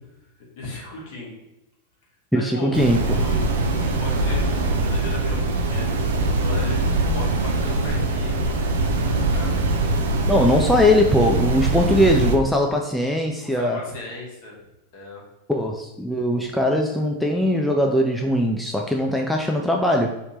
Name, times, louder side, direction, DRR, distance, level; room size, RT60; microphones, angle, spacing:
voice 1, 0.6-1.3 2.3-5.9 6.4-8.6 9.1-9.6 13.3-14.6 14.9-15.2 19.3-19.4, left 2 dB, 50° left, -2 dB, 1.3 m, -36 dB
voice 2, 2.3-3.3 10.2-13.8 15.5-20.1, left 1 dB, ahead, 1 dB, 0.3 m, -20 dB
sound 1, 2.7-12.4, right 2 dB, 60° right, 0.5 m, -22 dB
3.3 x 2.8 x 4.2 m, 0.94 s
figure-of-eight pair, 90°, 0 cm